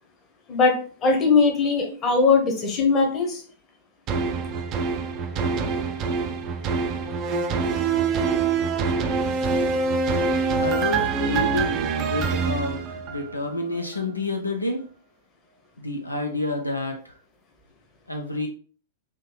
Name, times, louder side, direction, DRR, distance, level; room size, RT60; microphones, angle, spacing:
voice 1, 1.0-3.4, left 4 dB, 25° left, 2 dB, 0.9 m, -20 dB
sound 1, 4.1-13.5 13.9-14.0, right 4 dB, 35° right, 0.4 m, -25 dB
voice 2, 10.6-14.8 15.8-17.2 18.1-18.5, left 1 dB, 85° left, 3 dB, 0.4 m, -28 dB
3.6 x 2.6 x 2.2 m, 0.41 s
figure-of-eight pair, 100°, 0 cm